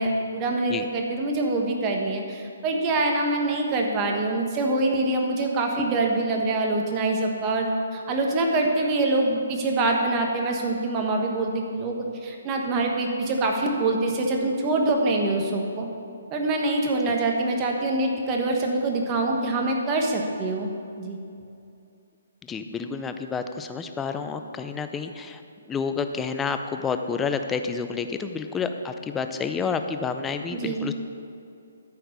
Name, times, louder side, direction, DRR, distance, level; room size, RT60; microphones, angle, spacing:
voice 1, 0.0-15.9 16.3-20.7 21.0-21.2 30.5-30.9, right 2 dB, 25° right, 1 dB, 1.3 m, -25 dB
voice 2, 22.5-25.4 25.7-30.9, left 5 dB, 10° left, 7 dB, 0.5 m, -29 dB
12.5 x 4.6 x 6.6 m, 2.5 s
hypercardioid pair, 150°, 0 cm